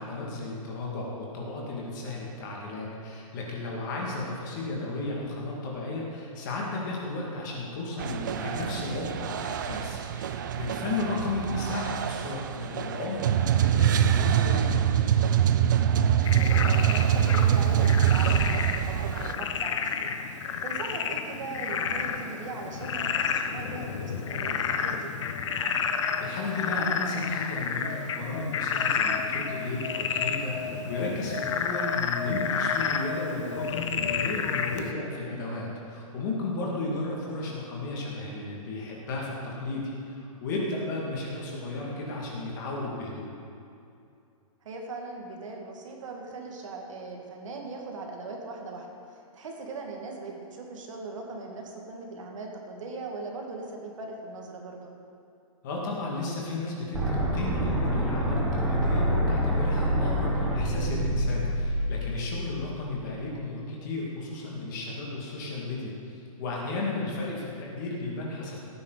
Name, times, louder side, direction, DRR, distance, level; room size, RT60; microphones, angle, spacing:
voice 1, 0.0-15.2 26.2-43.3 55.6-68.6, left 2 dB, 30° left, -3 dB, 2.3 m, -34 dB
sound 1, 8.0-19.3, right 10 dB, 35° right, 0.4 m, -25 dB
Frog, 16.2-34.9, left 6 dB, 50° left, 0.9 m, -30 dB
voice 2, 16.4-20.1 20.6-25.1 36.9-37.0 44.6-54.9, right 3 dB, 60° right, 1 dB, 2.1 m, -39 dB
sound 2, 56.9-62.9, equal, 5° right, 1.1 m, -27 dB
17.0 x 9.4 x 4.1 m, 2.6 s
hypercardioid pair, 175°, 19 cm